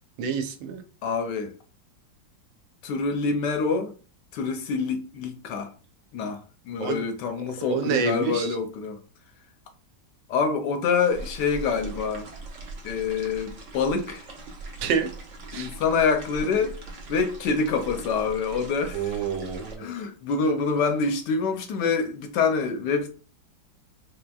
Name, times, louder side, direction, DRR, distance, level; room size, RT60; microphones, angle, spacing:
voice 1, 0.2-0.8 6.8-7.0 7.7-8.6 14.8-15.1 15.5-15.7 18.9-19.9, right 6 dB, 85° right, 1.4 m, -27 dB
voice 2, 1.0-1.5 2.8-3.9 4.3-5.7 6.1-9.0 10.3-12.3 12.8-14.2 15.5-16.7 17.1-19.2 19.8-23.1, left 5 dB, 75° left, 1.1 m, -26 dB
sound 1, 11.1-19.8, right 3 dB, 55° right, 0.9 m, -41 dB
4.2 x 3.3 x 2.3 m
omnidirectional pair, 2.1 m